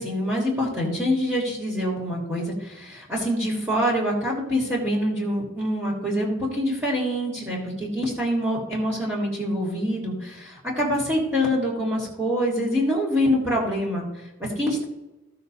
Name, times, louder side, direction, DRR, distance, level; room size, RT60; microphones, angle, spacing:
voice 1, 0.0-14.8, equal, 10° right, -6 dB, 3.1 m, -25 dB
16.5 x 6.4 x 2.8 m, 1.0 s
head